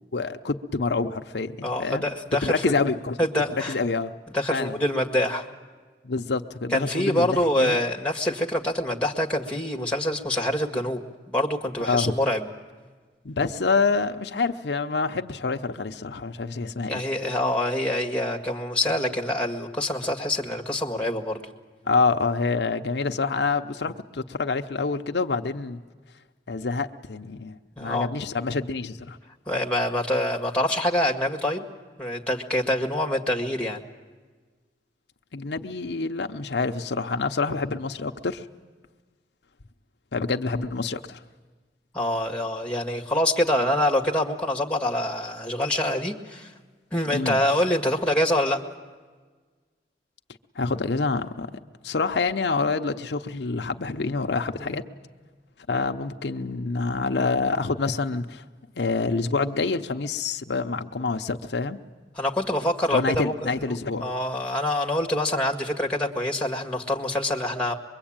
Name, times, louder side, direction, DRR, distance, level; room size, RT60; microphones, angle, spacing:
voice 1, 0.0-2.0 2.4-3.2 3.7-4.1 4.5-4.8 6.0-7.8 11.8-12.1 13.2-17.0 21.9-25.8 26.5-29.2 35.3-38.5 40.1-41.2 47.1-47.4 50.6-51.5 51.8-54.8 55.7-58.4 58.8-61.8 62.9-64.1, left 4 dB, 75° left, 5 dB, 0.7 m, -27 dB
voice 2, 1.6-2.6 3.2-3.8 4.3-5.5 6.7-11.0 11.3-12.5 16.9-21.4 27.8-28.1 29.5-31.6 32.0-33.8 41.9-46.5 46.9-48.6 54.6-54.8 62.2-63.3 63.6-63.8 64.0-67.7, left 1 dB, 5° left, 2 dB, 1.9 m, -25 dB
24.0 x 22.5 x 8.8 m, 1.4 s
head